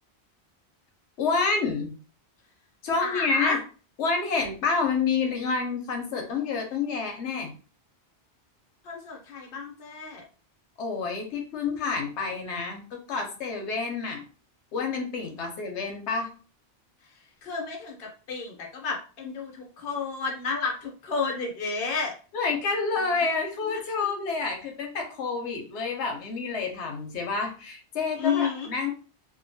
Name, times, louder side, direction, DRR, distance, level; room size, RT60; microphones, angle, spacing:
voice 1, 1.2-1.9 2.8-3.6 4.0-7.5 10.8-14.2 14.7-16.3 22.3-28.9, left 4 dB, 85° left, 2 dB, 0.9 m, -28 dB
voice 2, 3.0-3.6 8.8-10.2 17.4-22.1 28.2-28.7, left 5 dB, 60° left, 1 dB, 0.9 m, -31 dB
2.8 x 2.2 x 2.6 m, 0.36 s
omnidirectional pair, 1.1 m